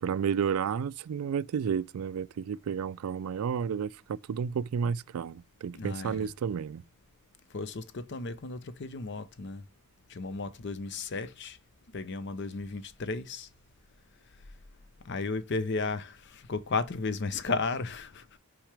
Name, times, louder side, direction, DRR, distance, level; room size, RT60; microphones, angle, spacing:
voice 1, 0.0-6.8, right 7 dB, 75° right, 0.3 m, -31 dB
voice 2, 5.7-6.3 7.5-9.6 10.1-11.6 11.9-13.5 15.0-18.3, left 3 dB, 50° left, 0.6 m, -34 dB
5.9 x 4.8 x 3.3 m
head